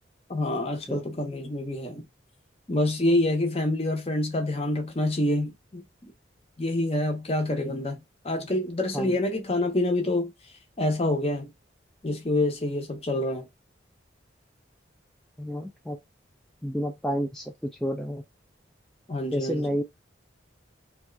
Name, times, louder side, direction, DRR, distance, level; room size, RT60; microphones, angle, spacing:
voice 1, 0.3-2.0 2.7-5.8 6.6-10.3 10.8-11.5 12.0-13.5 19.1-19.7, left 1 dB, 30° left, 0.7 m, -27 dB
voice 2, 15.4-16.0 16.6-18.2 19.3-19.8, equal, 5° left, 0.3 m, -30 dB
2.7 x 2.3 x 3.2 m
head